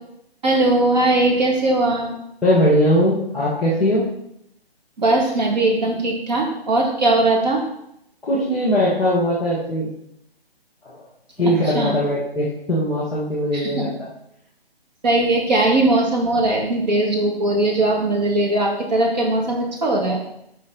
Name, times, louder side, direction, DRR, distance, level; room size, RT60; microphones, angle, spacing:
voice 1, 0.4-2.1 5.0-7.6 11.7-11.9 13.5-13.9 15.0-20.2, right 2 dB, 45° right, 0 dB, 1.8 m, -19 dB
voice 2, 2.4-4.1 8.2-9.9 10.8-11.0 11.4-13.9, equal, ahead, -14 dB, 0.3 m, -20 dB
6.6 x 4.9 x 3.8 m, 0.77 s
figure-of-eight pair, 145°, 31 cm